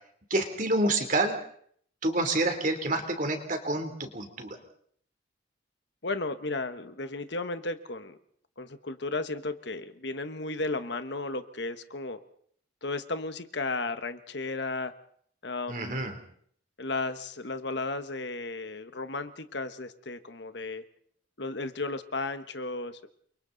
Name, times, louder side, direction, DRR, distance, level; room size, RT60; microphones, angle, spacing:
voice 1, 0.3-1.4 2.0-4.6 15.7-16.2, right 2 dB, 40° right, 6 dB, 3.3 m, -28 dB
voice 2, 6.0-8.2 8.6-12.2 12.8-14.9 15.4-16.1 16.8-20.8 21.4-23.1, left 3 dB, 60° left, 10 dB, 1.3 m, -34 dB
29.5 x 23.5 x 4.0 m, 0.62 s
head